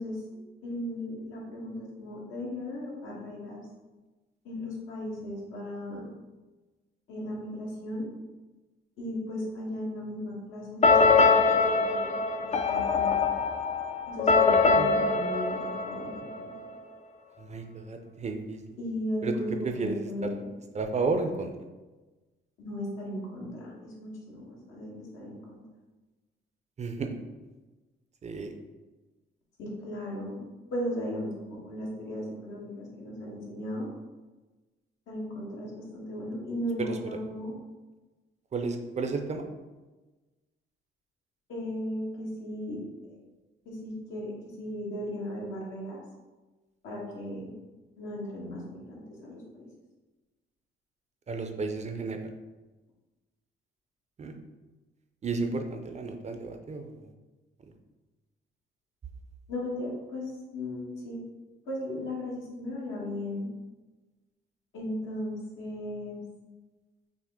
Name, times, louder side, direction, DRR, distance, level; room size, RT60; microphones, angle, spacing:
voice 1, 0.0-3.6 4.4-6.1 7.1-8.1 9.0-13.1 14.1-16.8 18.8-20.5 22.6-25.6 29.6-33.9 35.1-37.5 41.5-42.8 43.1-43.2 43.6-46.0 46.8-47.5 48.0-49.7 59.5-61.2 61.7-63.5 64.7-66.2, left 1 dB, 80° left, -4 dB, 1.4 m, -36 dB
sound 1, 10.8-16.6, left 4 dB, 35° left, 0.4 m, -23 dB
voice 2, 17.4-18.6 19.2-19.4 19.6-20.0 20.2-20.3 20.7-21.5 26.8-27.1 28.2-28.6 36.8-37.2 38.5-39.4 51.3-52.3 54.2-54.3 55.2-57.1, right 4 dB, 35° right, 5 dB, 0.5 m, -32 dB
5.9 x 2.1 x 3.6 m, 1.2 s
cardioid pair, 90°, 20 cm